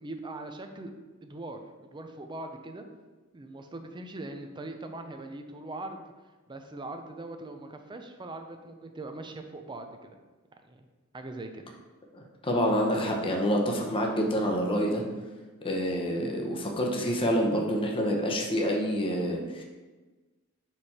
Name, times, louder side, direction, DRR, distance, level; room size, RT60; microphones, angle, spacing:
voice 1, 0.0-0.9 1.2-2.8 3.3-6.1 6.5-10.1 10.7-10.9 11.1-11.6, right 2 dB, 20° right, 6 dB, 0.5 m, -41 dB
voice 2, 12.1-15.0 15.6-19.6, equal, 25° left, 0 dB, 0.8 m, -27 dB
4.9 x 4.5 x 4.2 m, 1.3 s
head